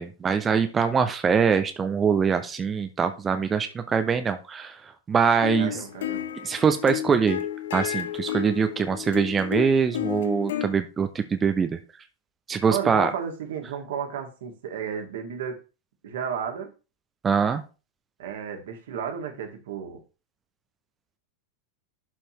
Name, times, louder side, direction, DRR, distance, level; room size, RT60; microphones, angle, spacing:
voice 1, 0.0-4.8 5.1-5.7 6.4-7.4 7.7-11.7 12.5-13.1 17.2-17.6, right 6 dB, 20° right, 8 dB, 0.6 m, -23 dB
sound 1, 5.4-10.7, left 11 dB, 60° left, 1.1 m, -32 dB
voice 2, 5.6-6.2 12.7-15.6 16.0-16.7 18.2-20.0, right 7 dB, 60° right, 4 dB, 1.8 m, -33 dB
11.5 x 4.4 x 3.0 m, 0.32 s
figure-of-eight pair, 90°, 0 cm